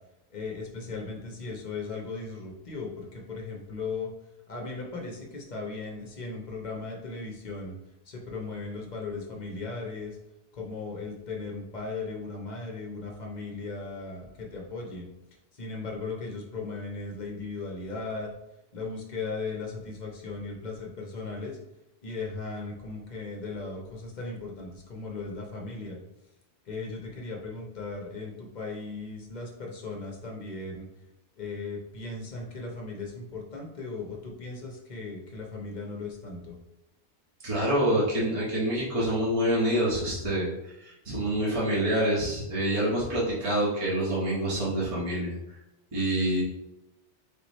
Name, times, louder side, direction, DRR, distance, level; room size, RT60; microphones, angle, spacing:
voice 1, 0.3-4.1 4.5-7.7 8.0-10.2 10.5-15.1 15.5-18.3 18.7-21.6 22.0-26.0 26.6-30.8 31.4-36.6, left 3 dB, 45° left, 0 dB, 0.8 m, -37 dB
voice 2, 37.4-45.3 45.9-46.4, right 1 dB, 30° right, -7 dB, 1.1 m, -27 dB
3.5 x 3.0 x 4.1 m, 0.94 s
omnidirectional pair, 1.1 m